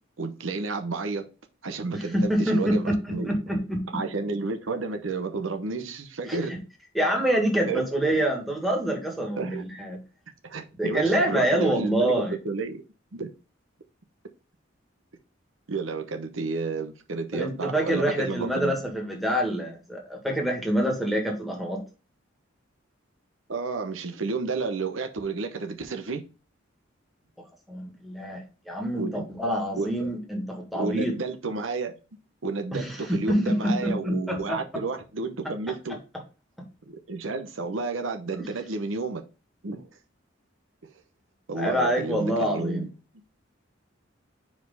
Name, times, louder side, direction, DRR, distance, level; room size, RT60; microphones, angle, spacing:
voice 1, 0.2-1.2 1.6-3.3 3.9-6.5 7.7-7.8 9.4-9.6 10.4-12.8 13.1-13.3 15.7-18.7 23.5-26.2 29.0-29.1 29.8-30.1 30.7-31.9 32.4-36.0 36.9-39.2 39.6-39.9 41.5-42.9, right 3 dB, 90° right, 6 dB, 0.9 m, -31 dB
voice 2, 1.9-4.0 6.3-6.4 6.9-10.0 10.8-12.4 17.3-21.8 27.7-31.2 32.7-34.6 41.5-42.9, right 1 dB, ahead, 1 dB, 1.7 m, -26 dB
4.8 x 4.4 x 5.3 m, 0.32 s
head